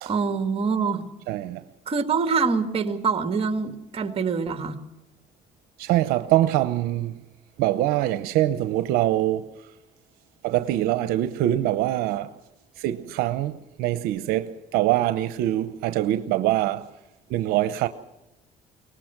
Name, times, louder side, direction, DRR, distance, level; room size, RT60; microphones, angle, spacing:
voice 1, 0.1-1.0 1.9-4.8, right 5 dB, 40° right, 2.2 m, -25 dB
voice 2, 1.3-1.6 5.8-7.2 7.6-9.5 10.4-12.3 12.8-16.9 17.3-17.9, right 14 dB, 85° right, 0.8 m, -24 dB
23.0 x 19.5 x 6.0 m
cardioid pair, 95°, 15 cm